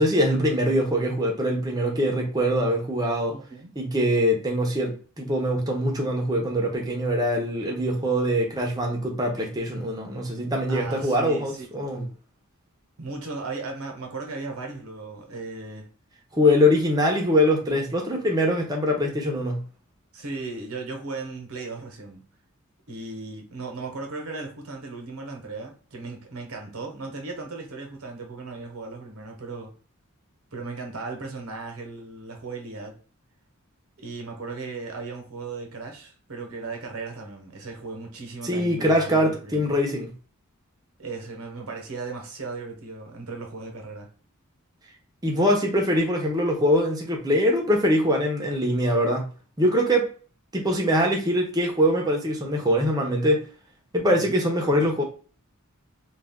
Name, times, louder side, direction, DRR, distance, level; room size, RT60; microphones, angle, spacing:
voice 1, 0.0-3.4 3.8-12.0 16.3-19.6 38.4-40.1 45.2-49.3 49.6-50.1 50.5-53.4 53.9-55.0, equal, 15° right, 0.6 m, -23 dB
voice 2, 3.3-3.7 10.7-12.1 13.0-15.9 20.1-22.3 22.9-29.7 30.5-33.0 34.0-39.6 41.0-44.1 54.1-54.4, right 3 dB, 70° right, 0.9 m, -36 dB
2.3 x 2.3 x 3.5 m
head